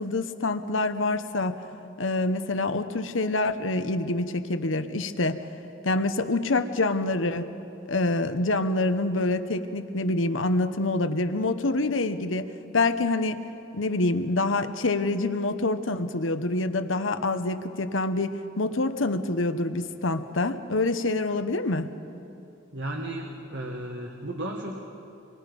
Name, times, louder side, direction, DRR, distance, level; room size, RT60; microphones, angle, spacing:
voice 1, 0.0-1.6 2.0-5.4 5.8-7.5 7.9-13.4 13.7-21.9, left 2 dB, 80° left, 9 dB, 1.1 m, -26 dB
voice 2, 22.7-24.8, right 1 dB, 65° right, 1 dB, 1.9 m, -34 dB
25.5 x 24.0 x 5.4 m, 2.7 s
head